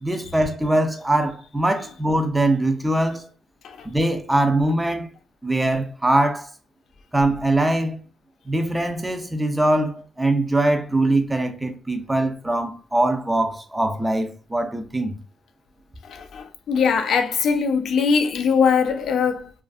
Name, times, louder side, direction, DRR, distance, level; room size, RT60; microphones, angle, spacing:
voice 1, 0.0-3.3 3.8-5.1 5.4-6.5 7.1-8.0 8.5-15.1, right 1 dB, 10° right, 0.5 m, -22 dB
voice 2, 16.0-19.5, left 6 dB, 65° left, 0.3 m, -21 dB
2.4 x 2.4 x 2.3 m
cardioid pair, 90°, 0 cm